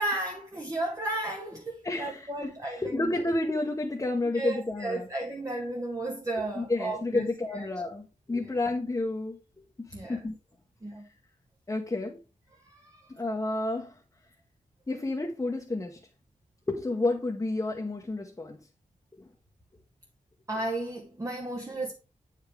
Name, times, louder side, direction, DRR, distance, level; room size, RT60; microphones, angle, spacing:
voice 1, 0.0-3.3 4.3-7.7 8.4-8.6 9.9-10.3 10.8-11.1 12.6-13.1 20.5-21.9, right 2 dB, 25° right, 1.0 m, -34 dB
voice 2, 1.8-2.5 2.8-5.1 6.6-9.4 9.8-10.4 11.7-12.2 13.1-13.9 14.9-16.0 16.7-18.6, left 2 dB, 20° left, 1.0 m, -30 dB
8.1 x 5.0 x 3.4 m
wide cardioid pair, 105°, 14 cm